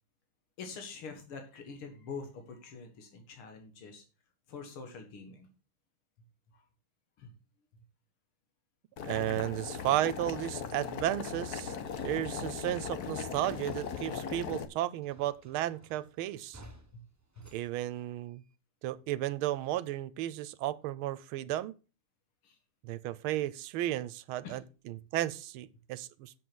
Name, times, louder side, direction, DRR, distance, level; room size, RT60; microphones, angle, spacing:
voice 1, 0.6-4.0 4.5-5.5 6.5-6.6 7.2-7.3 17.4-17.5 22.4-22.6 24.4-24.6, left 4 dB, 80° left, 2.7 m, -45 dB
Boiling, 9.0-14.6, left 7 dB, 55° left, 1.3 m, -38 dB
voice 2, 9.1-11.7 12.0-16.6 17.5-18.4 18.8-21.7 22.8-26.3, right 14 dB, 80° right, 1.5 m, -34 dB
sound 1, 11.7-14.4 14.7-18.6, equal, 15° right, 0.5 m, -58 dB
7.8 x 7.6 x 6.2 m
omnidirectional pair, 2.4 m